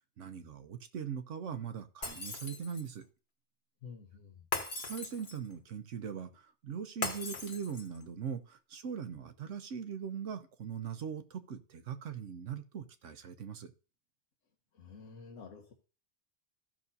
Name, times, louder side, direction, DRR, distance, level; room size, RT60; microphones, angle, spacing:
voice 1, 0.2-3.0 4.8-13.7, right 7 dB, 75° right, 9 dB, 1.2 m, -41 dB
Shatter, 2.0-3.0 4.5-5.5 7.0-8.0, left 3 dB, 55° left, 1.6 m, -39 dB
voice 2, 3.8-4.4 14.7-15.7, left 5 dB, 80° left, 2 dB, 1.4 m, -50 dB
15.0 x 6.1 x 2.7 m, 0.35 s
omnidirectional pair, 1.3 m